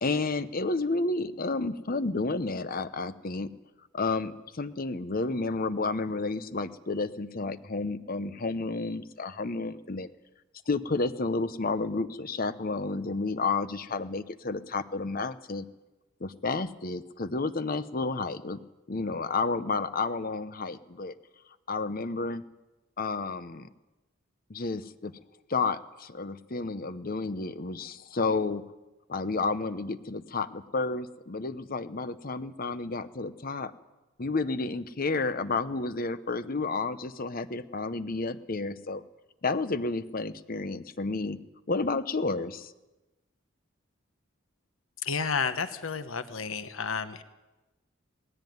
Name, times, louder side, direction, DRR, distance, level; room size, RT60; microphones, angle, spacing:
voice 1, 0.0-3.5 3.9-10.1 10.7-15.7 16.2-18.6 18.9-21.1 21.7-22.4 23.0-23.7 24.5-25.1 25.5-28.6 29.1-33.7 34.2-39.0 39.4-41.4 41.7-42.7, left 3 dB, 45° left, 13 dB, 0.8 m, -31 dB
voice 2, 45.0-47.2, left 5 dB, 80° left, 10 dB, 1.1 m, -31 dB
19.5 x 16.0 x 9.4 m, 1.1 s
head